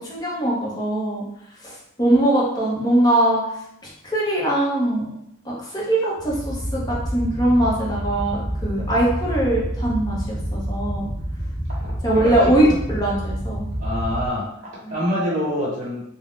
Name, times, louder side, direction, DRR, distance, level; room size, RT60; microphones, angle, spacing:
voice 1, 0.1-1.2 1.6-3.4 4.0-5.1 5.4-11.1 12.0-13.7 14.8-15.1, right 1 dB, 20° left, -5 dB, 0.8 m, -21 dB
sound 1, 6.2-14.3, equal, 15° right, 0.4 m, -28 dB
voice 2, 11.7-12.8 13.8-16.0, equal, 40° right, -7 dB, 1.1 m, -27 dB
2.5 x 2.2 x 3.5 m, 0.77 s
head